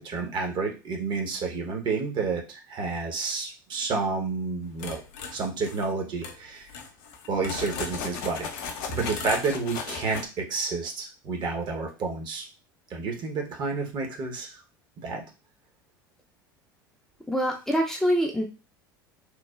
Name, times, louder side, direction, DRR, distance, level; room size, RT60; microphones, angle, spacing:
voice 1, 0.0-5.0 5.3-6.7 7.3-8.5 8.9-12.4 12.9-14.6 15.0-15.2, right 4 dB, 40° right, 2 dB, 0.8 m, -30 dB
sound 1, 4.8-5.9 6.2-6.4 6.7-10.3, left 5 dB, 60° left, 0.5 m, -36 dB
voice 2, 17.3-18.4, equal, 5° left, -1 dB, 0.5 m, -25 dB
3.1 x 2.1 x 2.3 m, 0.29 s
figure-of-eight pair, 75°, 11 cm